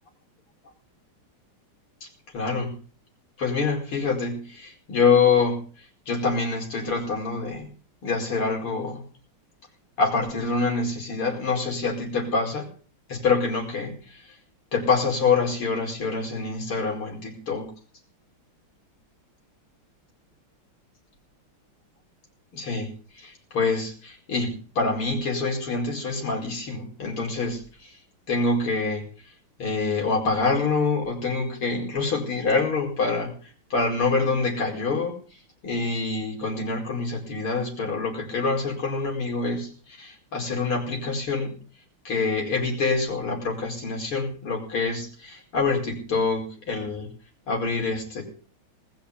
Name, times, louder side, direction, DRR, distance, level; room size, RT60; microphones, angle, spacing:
voice 1, 2.3-2.8 3.4-5.6 6.1-7.6 8.0-9.0 10.0-12.7 13.1-14.2 14.7-17.7 22.5-22.9 23.2-27.9 28.3-29.0 29.6-33.3 33.7-35.2 35.6-41.5 42.0-47.1 47.5-48.2, left 4 dB, 90° left, 0 dB, 5.8 m, -26 dB
20.0 x 7.1 x 8.4 m, 0.41 s
omnidirectional pair, 2.3 m